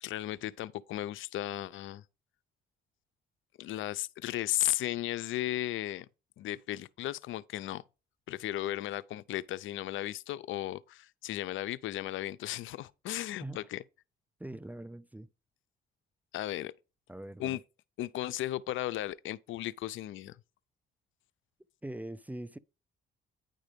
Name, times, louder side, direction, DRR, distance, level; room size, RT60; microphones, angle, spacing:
voice 1, 0.0-2.0 3.6-6.1 6.4-7.8 8.3-13.8 16.3-16.7 17.4-17.6 18.0-20.3, left 14 dB, 80° left, 0.5 m, -35 dB
voice 2, 14.4-15.3 17.1-17.6 21.8-22.6, right 1 dB, 10° right, 0.4 m, -42 dB
9.8 x 3.9 x 5.1 m
cardioid pair, 90°, 20 cm